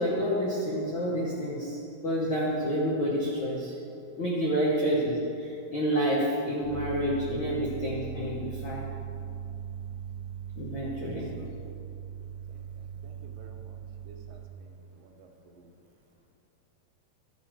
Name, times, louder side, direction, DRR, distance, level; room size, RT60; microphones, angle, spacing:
voice 1, 0.0-3.7 4.2-8.8 10.6-11.3, equal, 75° left, -5 dB, 1.1 m, -29 dB
sound 1, 6.6-14.4, right 7 dB, 25° left, 1.5 m, -39 dB
voice 2, 11.0-11.7 12.5-15.8, right 2 dB, 80° right, 3 dB, 2.5 m, -54 dB
12.5 x 6.5 x 4.5 m, 2.6 s
omnidirectional pair, 4.1 m